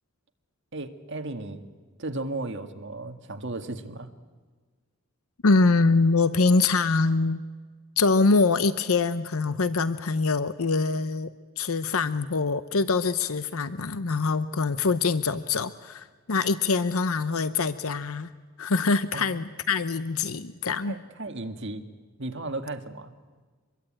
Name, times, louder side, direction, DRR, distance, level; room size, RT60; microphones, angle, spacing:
voice 1, 0.7-1.6 2.0-4.1 19.1-19.2 20.8-21.8 22.2-23.1, right 2 dB, 55° right, 6 dB, 1.9 m, -35 dB
voice 2, 5.4-7.4 8.0-11.3 11.6-18.3 18.6-20.9, left 3 dB, 75° left, 13 dB, 0.8 m, -24 dB
26.0 x 22.0 x 8.8 m, 1.4 s
head